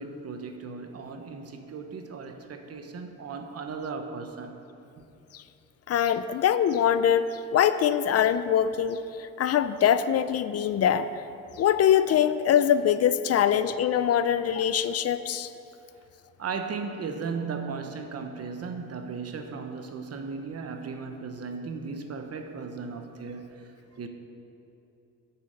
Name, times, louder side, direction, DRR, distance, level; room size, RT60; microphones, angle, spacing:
voice 1, 0.0-4.6 5.0-5.1 16.4-24.1, right 5 dB, 55° right, 6 dB, 1.1 m, -36 dB
voice 2, 5.9-11.2 11.6-15.5, left 9 dB, 55° left, 13 dB, 0.5 m, -23 dB
9.2 x 7.0 x 6.5 m, 2.8 s
cardioid pair, 90°, 30 cm